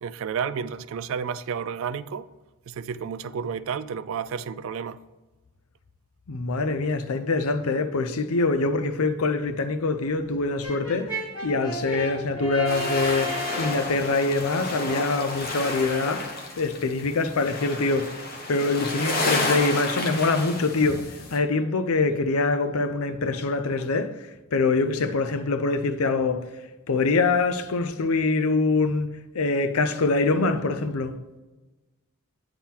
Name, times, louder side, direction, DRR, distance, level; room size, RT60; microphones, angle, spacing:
voice 1, 0.0-2.3 2.7-5.0, right 6 dB, 65° right, 0.3 m, -31 dB
voice 2, 6.3-16.3 16.6-18.2 18.5-26.5 26.9-31.1, left 3 dB, 75° left, 0.6 m, -24 dB
Brass instrument, 10.6-13.9, equal, 20° left, 1.6 m, -33 dB
sound 1, 12.7-21.4, left 2 dB, 45° left, 0.9 m, -31 dB
8.9 x 3.7 x 4.3 m
head